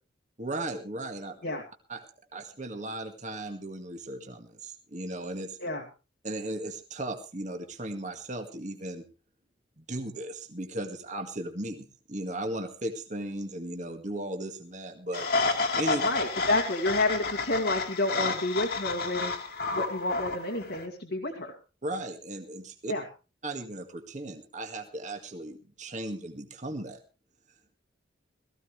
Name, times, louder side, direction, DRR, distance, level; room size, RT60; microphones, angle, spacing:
voice 1, 0.4-1.4 1.9-2.0 2.3-5.6 6.2-9.0 9.8-15.3 15.7-16.0 19.7-19.8 21.8-22.9 23.4-27.0, right 1 dB, 40° right, 5 dB, 1.9 m, -36 dB
sound 1, 15.1-20.8, left 3 dB, 55° left, 2.2 m, -30 dB
voice 2, 16.0-19.3 19.7-21.6 22.9-23.0, left 2 dB, 75° left, -1 dB, 2.4 m, -29 dB
18.5 x 15.0 x 3.3 m, 0.32 s
head